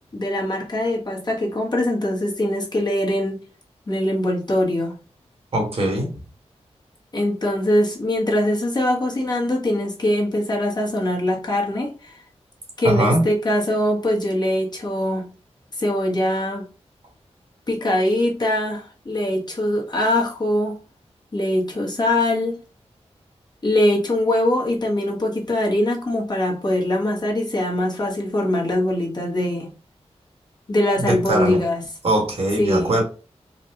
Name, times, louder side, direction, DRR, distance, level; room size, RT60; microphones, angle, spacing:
voice 1, 0.1-3.4 3.9-5.0 7.1-12.2 12.8-15.3 15.8-16.6 17.7-20.8 21.3-22.6 23.6-29.7 30.7-31.8 32.6-32.9, left 1 dB, 40° left, 1.1 m, -22 dB
voice 2, 5.5-6.1 12.8-13.2 31.0-31.6 32.0-33.0, right 1 dB, 60° right, 1.5 m, -21 dB
4.1 x 2.2 x 2.8 m
wide cardioid pair, 105°, 11 cm